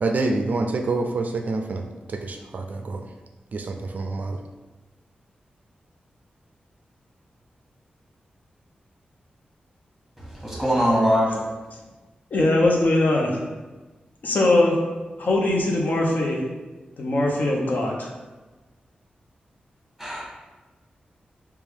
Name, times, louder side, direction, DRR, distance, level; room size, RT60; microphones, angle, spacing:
voice 1, 0.0-3.1 3.5-4.4, right 3 dB, 60° right, 5 dB, 0.3 m, -27 dB
voice 2, 10.2-11.5 20.0-20.2, equal, ahead, -5 dB, 1.3 m, -22 dB
voice 3, 12.3-13.4 14.2-14.8 15.2-16.4 17.0-18.1, left 2 dB, 65° left, -1 dB, 0.7 m, -21 dB
4.6 x 2.3 x 3.5 m, 1.2 s
wide cardioid pair, 85°, 3 cm